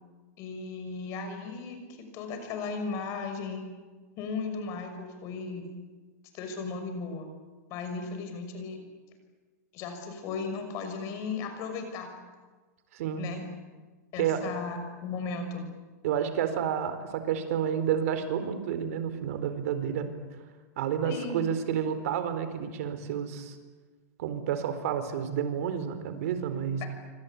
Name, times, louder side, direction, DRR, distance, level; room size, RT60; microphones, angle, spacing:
voice 1, 0.4-3.7 4.2-5.7 6.3-7.3 7.7-8.8 9.7-12.1 13.2-13.4 14.1-15.7 21.0-21.4 26.8-26.9, left 4 dB, 35° left, 6 dB, 6.2 m, -36 dB
voice 2, 14.2-14.5 16.0-20.1 20.8-23.5 24.2-26.8, right 8 dB, 55° right, 10 dB, 4.2 m, -30 dB
27.0 x 25.5 x 8.6 m, 1.3 s
supercardioid pair, 165°, 9 cm